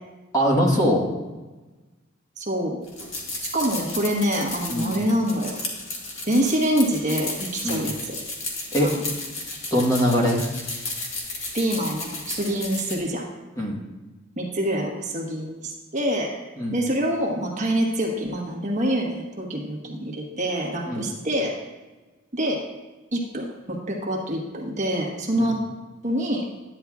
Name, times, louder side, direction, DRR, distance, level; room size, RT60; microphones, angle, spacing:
voice 1, 0.3-1.0 4.7-5.0 7.6-7.9 8.7-9.1 9.7-10.4 13.6-13.8 16.6-16.8 20.9-21.1 25.4-25.6, equal, 15° left, -2 dB, 1.3 m, -22 dB
voice 2, 2.4-2.8 3.4-5.6 6.2-8.2 8.8-9.0 11.5-13.3 14.4-16.3 16.7-21.5 22.3-22.6 23.1-25.6 26.0-26.4, equal, 35° right, 0 dB, 1.2 m, -26 dB
sound 1, 2.8-13.0, left 2 dB, 75° left, 1.9 m, -33 dB
11.0 x 9.4 x 2.4 m, 1.2 s
head